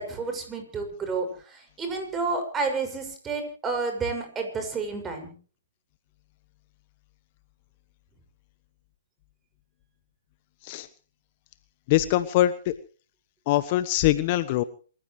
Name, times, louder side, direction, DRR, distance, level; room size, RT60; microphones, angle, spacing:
voice 1, 0.0-5.3, right 4 dB, 15° right, 5 dB, 6.4 m, -30 dB
voice 2, 11.9-12.8 13.5-14.6, left 15 dB, 40° left, 14 dB, 1.1 m, -23 dB
27.5 x 15.0 x 3.3 m, 0.39 s
figure-of-eight pair, 130°, 0 cm